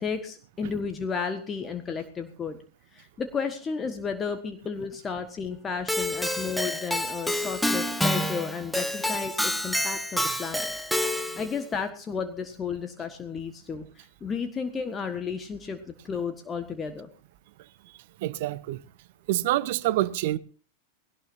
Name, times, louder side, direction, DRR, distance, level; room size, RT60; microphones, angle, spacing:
voice 1, 0.0-2.6 2.9-10.7 11.1-17.1, left 5 dB, 20° left, 1.6 m, -33 dB
Keyboard (musical), 5.9-11.5, left 1 dB, ahead, 1.1 m, -28 dB
voice 2, 18.2-18.8 19.3-20.4, right 16 dB, 50° right, 0.8 m, -26 dB
20.0 x 17.5 x 2.7 m
figure-of-eight pair, 90°, 0 cm